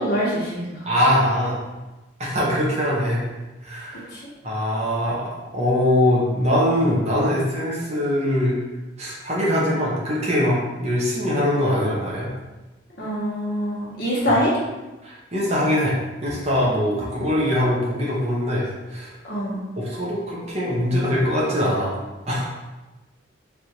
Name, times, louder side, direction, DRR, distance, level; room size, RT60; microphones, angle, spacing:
voice 1, 0.0-0.8 4.1-4.2 13.0-14.5 19.2-19.6, equal, 50° left, -7 dB, 1.3 m, -24 dB
voice 2, 0.8-1.6 2.2-3.2 3.6-4.1 4.4-8.5 9.0-12.3 15.0-16.0 16.2-19.1 19.8-21.9 22.3-22.5, left 1 dB, 35° right, -5 dB, 1.0 m, -22 dB
3.4 x 2.6 x 4.4 m, 1.1 s
head